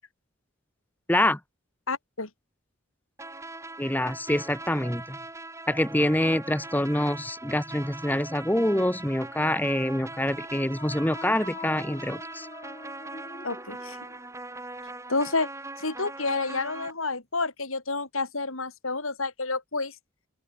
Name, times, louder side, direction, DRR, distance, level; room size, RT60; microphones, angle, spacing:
voice 1, 1.1-1.4 3.8-5.2 5.7-12.5, left 1 dB, 10° left, 1.8 m, -26 dB
voice 2, 1.9-2.3 13.4-14.0 15.1-15.5 15.8-19.9, left 3 dB, 80° left, 4.3 m, -29 dB
sound 1, 3.2-16.9, right 2 dB, 15° right, 4.9 m, -41 dB
sound 2, 10.4-14.3, left 2 dB, 25° left, 3.7 m, -44 dB
open air
head